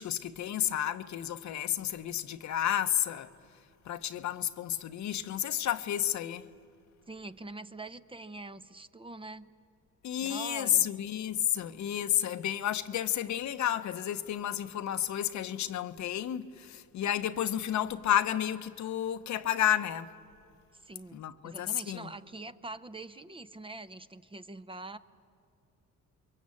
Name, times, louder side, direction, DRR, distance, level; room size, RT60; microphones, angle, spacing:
voice 1, 0.0-3.3 3.9-6.5 10.0-20.1 21.1-22.1, left 11 dB, 70° left, 1.0 m, -31 dB
voice 2, 7.1-9.5 10.2-10.9 20.8-25.0, right 2 dB, 15° right, 0.8 m, -44 dB
28.5 x 23.0 x 8.6 m
cardioid pair, 90°, 30 cm